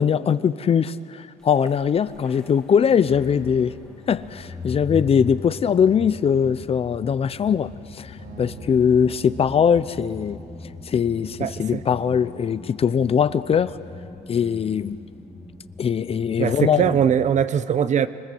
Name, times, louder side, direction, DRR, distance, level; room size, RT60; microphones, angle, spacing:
voice 1, 0.0-3.7 4.1-10.4 10.9-13.7 14.3-15.0 15.8-17.0, left 7 dB, 35° left, 15 dB, 0.6 m, -21 dB
sound 1, 1.5-17.4, left 3 dB, 5° left, 2.4 m, -40 dB
Acoustic guitar, 8.2-10.6, right 5 dB, 75° right, 7.5 m, -46 dB
voice 2, 11.4-11.8 16.4-18.1, right 8 dB, 45° right, 14 dB, 0.8 m, -21 dB
26.5 x 20.5 x 7.8 m, 2.6 s
cardioid pair, 110°, 17 cm